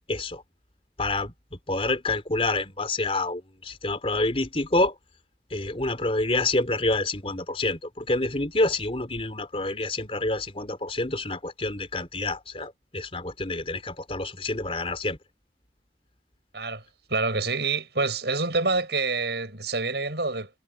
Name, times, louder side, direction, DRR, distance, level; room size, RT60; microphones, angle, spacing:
voice 1, 0.1-0.4 1.0-4.9 5.5-15.2, left 2 dB, 35° left, 4.0 m, -28 dB
voice 2, 17.1-20.5, right 3 dB, 70° right, 7.4 m, -27 dB
head